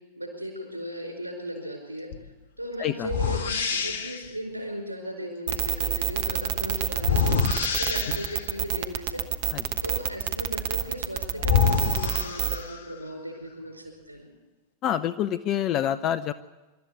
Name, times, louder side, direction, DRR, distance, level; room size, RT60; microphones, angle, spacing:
voice 1, 0.1-2.1 2.6-7.4 7.8-14.3, equal, 90° left, 3 dB, 5.0 m, -36 dB
sound 1, 2.1-2.3 3.1-4.3 7.0-8.5 10.8-10.9 11.4-13.0, left 7 dB, 65° left, 1.1 m, -26 dB
voice 2, 2.8-3.1 9.5-9.8 14.8-16.3, left 10 dB, 35° left, 13 dB, 0.6 m, -27 dB
sound 2, 5.5-12.6, right 10 dB, 55° right, 1.2 m, -27 dB
25.0 x 12.5 x 8.2 m, 1.2 s
figure-of-eight pair, 90°, 0 cm